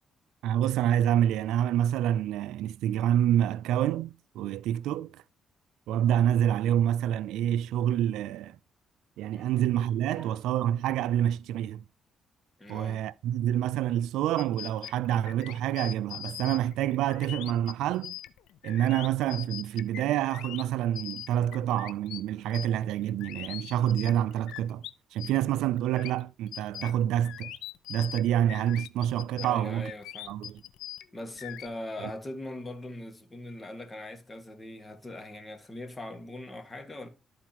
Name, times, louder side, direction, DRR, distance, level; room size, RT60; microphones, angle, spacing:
voice 1, 0.4-5.2 5.9-8.6 9.2-11.8 12.7-18.1 18.6-27.5 27.9-29.9 30.3-30.6 32.0-32.1, right 11 dB, 90° right, 0.3 m, -27 dB
voice 2, 9.3-10.4 12.6-13.0 25.2-25.3 29.4-30.4 31.1-37.1, left 1 dB, 20° left, 1.8 m, -41 dB
sound 1, 14.4-24.9 25.2-31.7, left 13 dB, 90° left, 0.5 m, -42 dB
12.5 x 4.7 x 2.9 m
cardioid pair, 90°, 0 cm